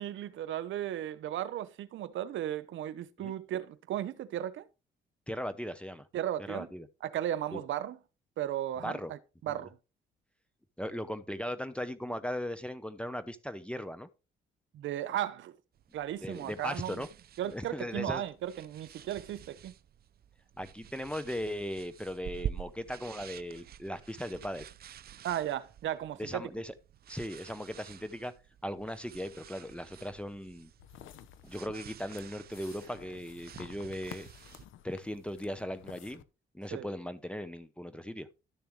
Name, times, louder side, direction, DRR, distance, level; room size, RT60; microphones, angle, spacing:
voice 1, 0.0-4.7 6.1-6.7 7.0-8.0 8.4-9.8 14.7-15.5 15.9-17.0 17.4-19.7 25.2-26.5 36.7-36.9, right 11 dB, 75° right, 0.9 m, -35 dB
voice 2, 5.3-6.1 6.5-6.9 7.5-7.6 8.8-9.1 9.5-9.6 10.8-14.1 16.2-17.1 17.5-18.2 20.6-24.7 26.2-26.7 27.1-28.3 28.6-30.7 31.4-34.3 34.8-36.2 36.5-38.3, equal, 5° left, 0.8 m, -38 dB
sound 1, 15.7-34.6, right 10 dB, 50° right, 0.5 m, -48 dB
sound 2, 30.8-36.2, left 11 dB, 80° left, 0.8 m, -52 dB
12.0 x 6.8 x 3.2 m
cardioid pair, 90°, 20 cm